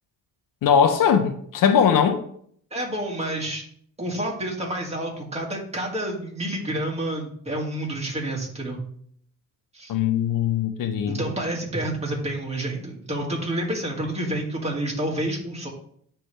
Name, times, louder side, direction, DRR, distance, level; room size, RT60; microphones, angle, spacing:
voice 1, 0.6-2.2 9.9-11.2, left 7 dB, 70° left, 0.7 m, -20 dB
voice 2, 2.7-3.6 4.0-8.8 9.7-9.9 11.1-15.7, right 1 dB, 20° right, 2.0 m, -29 dB
9.6 x 3.3 x 3.3 m
cardioid pair, 85°, 33 cm